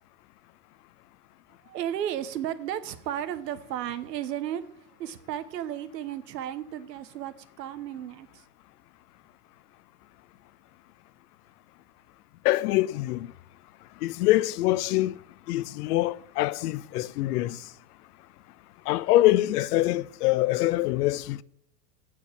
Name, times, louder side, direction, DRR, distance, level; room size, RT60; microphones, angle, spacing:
voice 1, 1.7-4.6 5.0-8.3, right 11 dB, 90° right, 1.0 m, -34 dB
voice 2, 12.4-13.3 14.0-15.1 15.5-17.6 18.9-21.4, left 16 dB, 70° left, 0.6 m, -24 dB
7.8 x 4.6 x 6.9 m
supercardioid pair, 125°, 48 cm